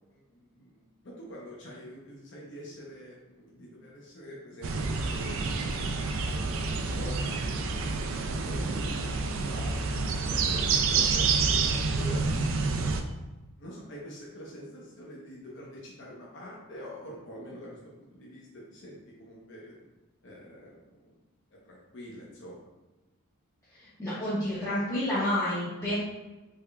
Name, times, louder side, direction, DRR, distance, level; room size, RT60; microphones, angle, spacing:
voice 1, 0.1-5.9 6.3-9.8 10.3-12.2 13.6-19.7 20.2-21.1 21.5-22.6, equal, 55° left, -4 dB, 0.6 m, -45 dB
sound 1, 4.6-13.0, right 4 dB, 60° right, 0.3 m, -28 dB
voice 2, 24.0-26.0, left 1 dB, 15° left, -11 dB, 0.7 m, -29 dB
3.4 x 3.3 x 2.3 m, 1.1 s
head